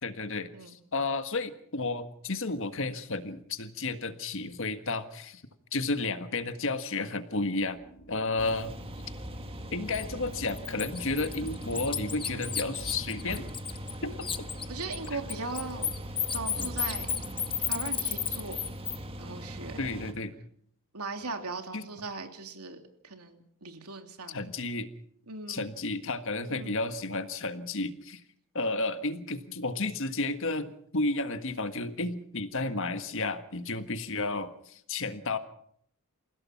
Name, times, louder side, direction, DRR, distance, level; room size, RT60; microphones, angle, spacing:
voice 1, 0.0-5.4 5.7-7.8 8.1-8.7 9.7-13.5 14.0-14.5 15.1-15.2 19.8-20.3 21.7-21.9 24.3-24.9 25.5-28.2 28.5-35.4, left 3 dB, 60° left, 9 dB, 1.6 m, -32 dB
sound 1, 7.5-13.4, right 1 dB, 45° left, 3.1 m, -55 dB
sound 2, 8.4-20.1, equal, 25° right, 2.0 m, -40 dB
Bird, 9.9-10.0 10.5-13.9 14.2-19.0, left 8 dB, 20° left, 1.2 m, -32 dB
voice 2, 14.7-15.9 16.3-17.1 17.7-18.7 19.2-19.8 20.9-24.4 25.3-25.7 26.5-26.8, right 3 dB, 90° right, 5 dB, 3.0 m, -39 dB
28.5 x 16.5 x 5.9 m, 0.67 s
head